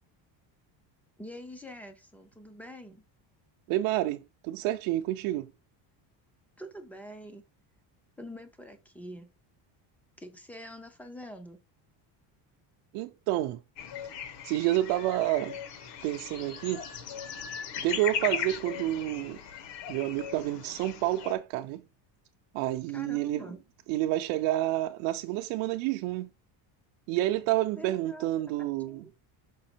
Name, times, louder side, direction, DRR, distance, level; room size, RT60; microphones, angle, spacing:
voice 1, 1.2-3.0 6.6-7.4 8.2-9.3 10.2-11.6 22.9-23.6 27.8-29.1, left 1 dB, 5° left, 0.4 m, -45 dB
voice 2, 3.7-5.5 12.9-13.6 14.4-15.6 16.0-16.8 17.8-19.4 19.9-21.8 22.5-23.5 23.9-26.3 27.1-29.1, right 15 dB, 70° right, 0.6 m, -29 dB
sound 1, 13.8-21.3, left 8 dB, 55° left, 1.3 m, -38 dB
5.8 x 5.4 x 4.4 m
cardioid pair, 175°, 49 cm